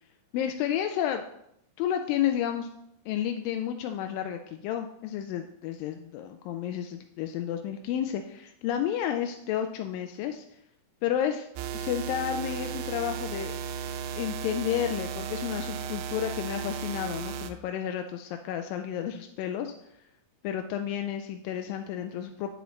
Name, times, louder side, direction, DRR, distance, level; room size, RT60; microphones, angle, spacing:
voice 1, 0.3-1.2 1.8-2.7 3.1-10.4 11.0-11.5 11.7-13.6 14.2-19.7 20.4-22.6, left 10 dB, 90° left, 5 dB, 2.3 m, -31 dB
sound 1, 11.6-17.5, right 7 dB, 85° right, 2.2 m, -35 dB
8.7 x 6.9 x 3.1 m, 0.76 s
omnidirectional pair, 3.9 m